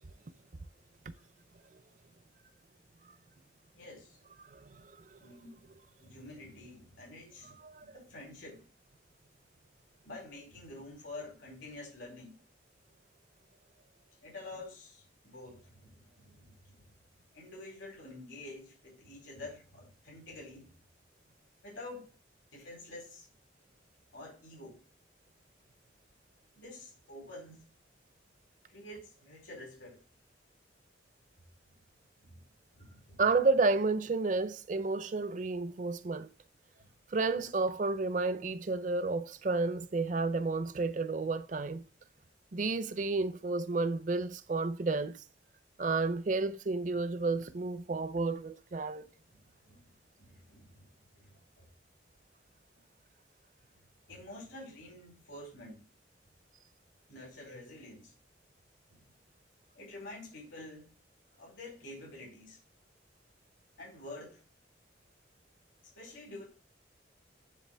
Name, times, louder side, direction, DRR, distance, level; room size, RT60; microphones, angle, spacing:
voice 1, 3.7-4.2 5.2-5.6 6.0-7.5 7.9-8.6 10.0-12.3 14.2-16.9 17.3-20.7 21.6-22.1 22.5-23.3 24.1-24.8 26.6-27.6 28.7-30.0 32.2-32.4 32.7-33.2 36.8-36.9 49.3-49.8 50.2-50.9 51.1-51.4 54.1-55.8 57.1-58.1 58.9-59.0 59.7-60.9 61.4-62.6 63.8-64.4 66.0-66.5, left 2 dB, 85° left, 4.1 m, -48 dB
voice 2, 4.4-5.2 7.6-7.9 33.2-36.3 37.1-41.8 42.5-45.2 45.8-49.1, right 3 dB, 40° right, 0.5 m, -31 dB
9.9 x 3.8 x 3.4 m
head